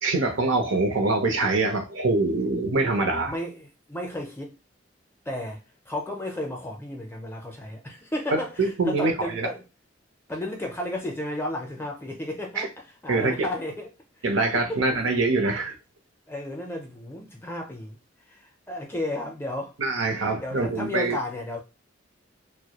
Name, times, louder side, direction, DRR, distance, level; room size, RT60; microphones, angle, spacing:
voice 1, 0.0-3.3 8.3-9.5 12.6-12.7 13.1-13.5 14.2-15.7 19.8-21.2, right 3 dB, 80° right, 0.6 m, -24 dB
voice 2, 3.2-4.6 5.3-5.6 5.9-9.6 10.3-13.9 14.2-14.3 14.7-14.8 16.3-18.0 18.3-19.7 20.4-21.6, left 1 dB, 10° left, 0.4 m, -33 dB
2.2 x 2.0 x 2.8 m
head